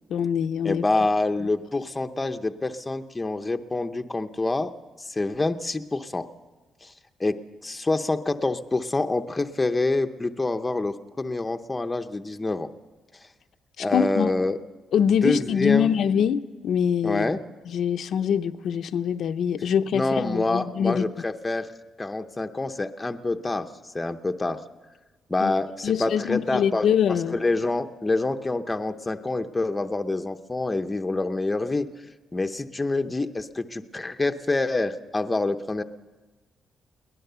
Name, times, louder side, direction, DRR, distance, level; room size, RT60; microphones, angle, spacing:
voice 1, 0.1-0.8 13.8-14.3 14.9-17.3 17.7-21.0 25.4-25.5 25.8-27.4, left 8 dB, 60° left, 8 dB, 0.6 m, -24 dB
voice 2, 0.6-4.7 5.0-6.3 6.8-6.9 7.2-12.7 13.8-14.6 15.2-15.9 17.0-17.4 19.9-21.7 22.0-24.6 25.3-26.9 27.3-31.9 32.3-35.8, left 2 dB, 15° left, 7 dB, 0.7 m, -26 dB
22.0 x 18.5 x 6.8 m, 1.3 s
cardioid pair, 170°, 0 cm